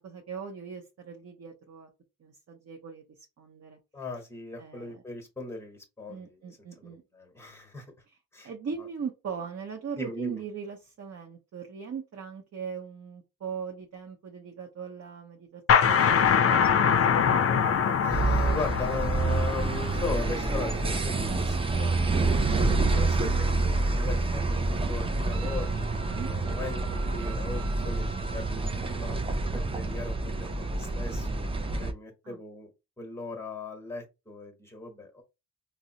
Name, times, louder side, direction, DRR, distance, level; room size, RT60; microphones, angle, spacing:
voice 1, 0.0-1.9 2.2-3.0 3.4-3.8 4.6-5.0 6.1-7.0 8.1-8.2 8.4-16.7 17.1-17.8 18.4-19.4 22.5-22.8 26.0-26.3 30.2-30.3 32.2-32.4, right 6 dB, 45° right, 2 dB, 0.7 m, -40 dB
voice 2, 3.9-6.5 6.8-7.9 8.3-8.5 10.0-10.4 18.0-29.2 29.5-32.7 33.0-35.2, left 3 dB, 5° left, 3 dB, 1.1 m, -38 dB
sound 1, 15.7-21.1, left 7 dB, 40° left, 0.4 m, -24 dB
sound 2, 18.1-31.9, right 3 dB, 15° right, 0.4 m, -28 dB
Wind instrument woodwind instrument, 25.3-28.5, right 3 dB, 80° right, 0.6 m, -46 dB
3.8 x 2.0 x 2.7 m, 0.25 s
cardioid pair, 85°, 35 cm